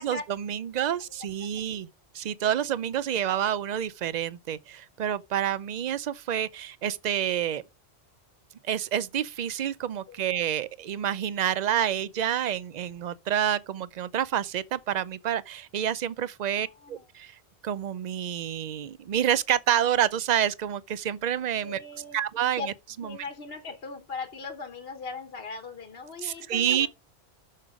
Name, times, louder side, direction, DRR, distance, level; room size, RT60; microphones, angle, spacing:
voice 1, 0.0-1.9 2.1-7.6 8.6-21.8 22.1-22.7 23.0-23.2 26.2-26.9, right 10 dB, 55° right, 0.5 m, -28 dB
voice 2, 16.5-17.0 21.6-22.2 22.6-22.7 23.0-26.9, left 4 dB, 60° left, 1.3 m, -39 dB
7.3 x 6.6 x 4.9 m
omnidirectional pair, 1.1 m